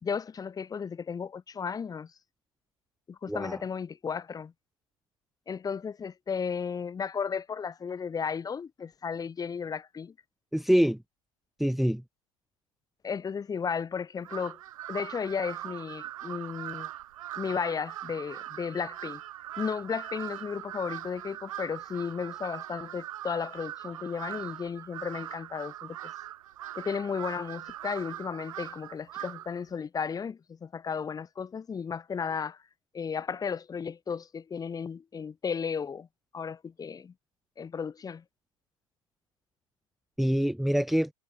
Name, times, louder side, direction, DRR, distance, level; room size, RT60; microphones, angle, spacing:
voice 1, 0.0-2.1 3.1-4.5 5.5-10.1 13.0-14.6 14.9-16.9 17.4-19.2 19.6-26.1 26.8-32.6 32.9-36.1 36.3-37.1 37.6-38.2, left 6 dB, 20° left, 3.7 m, -34 dB
voice 2, 3.3-3.6 10.5-11.0 11.6-12.0 40.2-41.1, equal, ahead, 1.2 m, -25 dB
Crow, 14.2-29.6, right 13 dB, 70° right, 4.7 m, -41 dB
hypercardioid pair, 100°, 18 cm